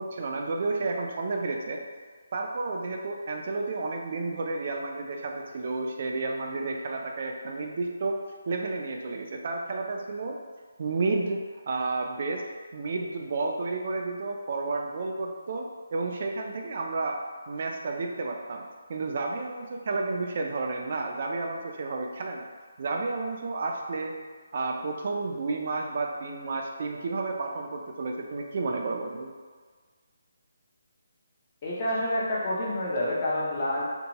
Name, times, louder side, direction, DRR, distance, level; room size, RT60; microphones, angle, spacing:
voice 1, 0.0-1.8 2.3-8.2 8.5-10.4 10.8-12.4 12.7-17.2 17.5-22.5 22.8-24.1 24.5-29.3, right 3 dB, 45° right, 1 dB, 0.3 m, -31 dB
voice 2, 31.6-33.8, left 1 dB, 25° left, -6 dB, 0.6 m, -28 dB
2.7 x 2.2 x 2.8 m, 1.5 s
hypercardioid pair, 170°, 0 cm